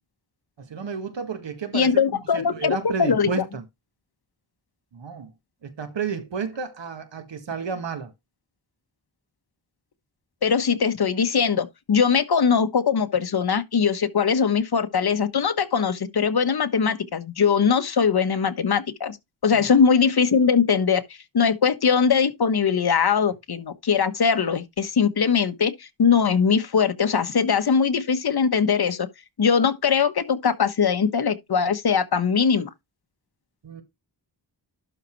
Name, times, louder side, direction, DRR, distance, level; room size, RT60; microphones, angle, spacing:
voice 1, 0.6-2.0 2.3-3.6 4.9-5.3 5.6-8.1 19.5-19.7 33.6-33.8, right 5 dB, 90° right, 1.9 m, -31 dB
voice 2, 1.7-3.3 10.4-19.2 19.4-21.0 21.3-29.1 29.4-32.7, left 6 dB, 60° left, 1.3 m, -21 dB
12.0 x 4.1 x 4.6 m
wide cardioid pair, 150°, 42 cm